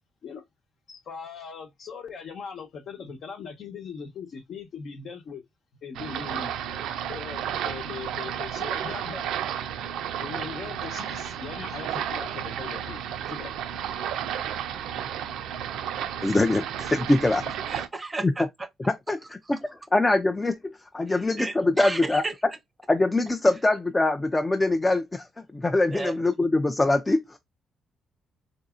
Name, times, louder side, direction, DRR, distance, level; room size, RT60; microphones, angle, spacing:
voice 1, 0.9-5.4 5.8-6.5 7.1-9.3 10.2-13.5 13.9-14.0, left 6 dB, 65° left, 1.0 m, -40 dB
sound 1, 5.9-17.9, right 9 dB, 85° right, 0.4 m, -32 dB
voice 2, 16.2-17.4 17.7-17.8 18.2-18.3 18.9-22.2 22.9-25.3 25.5-27.4, left 2 dB, 20° left, 0.4 m, -23 dB
voice 3, 17.7-18.7 19.5-19.6 21.1-22.3 25.9-26.2, right 3 dB, 25° right, 0.6 m, -34 dB
4.0 x 2.6 x 2.4 m
cardioid pair, 90°, 0 cm